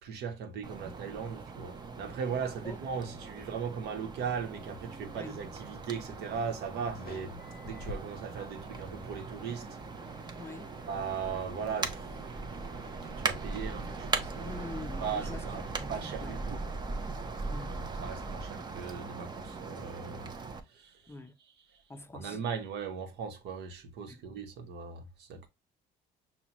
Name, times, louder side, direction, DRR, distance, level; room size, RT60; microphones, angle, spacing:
voice 1, 0.0-9.7 10.9-12.2 13.0-14.6 15.0-16.6 18.0-20.3 20.7-21.1 21.7-21.8 22.1-25.5, right 6 dB, 75° right, 0.9 m, -38 dB
sound 1, 0.6-20.6, right 3 dB, 25° right, 0.6 m, -39 dB
sound 2, 4.4-16.2, left 4 dB, 65° left, 0.6 m, -53 dB
voice 2, 10.4-10.7 14.5-15.4 15.8-16.4 17.5-17.8 21.1-21.4 21.9-22.4 24.1-24.2, left 2 dB, 15° left, 0.4 m, -44 dB
5.6 x 2.2 x 2.9 m
cardioid pair, 110°, 17 cm